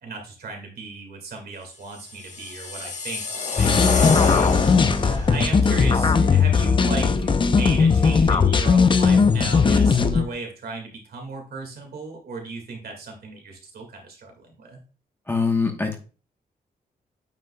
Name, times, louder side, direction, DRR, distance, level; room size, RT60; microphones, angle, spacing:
voice 1, 0.0-3.2 3.5-4.5 5.0-14.8, right 3 dB, 70° right, 2 dB, 2.0 m, -36 dB
sound 1, 2.1-5.3, left 4 dB, 50° left, 1.2 m, -26 dB
sound 2, 3.6-10.2, left 5 dB, 30° left, 0.5 m, -18 dB
voice 2, 15.3-16.0, left 4 dB, 15° left, 3 dB, 1.1 m, -23 dB
9.0 x 5.3 x 2.3 m, 0.36 s
wide cardioid pair, 150°, 17 cm